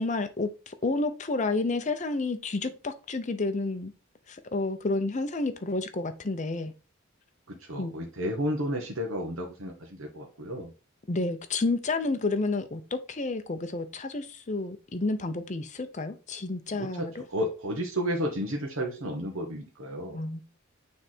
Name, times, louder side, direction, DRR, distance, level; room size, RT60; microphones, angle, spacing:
voice 1, 0.0-3.9 4.3-6.7 7.8-7.9 11.1-17.2 20.1-20.4, left 3 dB, 35° left, 0.7 m, -30 dB
voice 2, 7.5-10.7 16.7-20.2, equal, 80° right, 1.2 m, -32 dB
6.4 x 3.4 x 4.2 m
head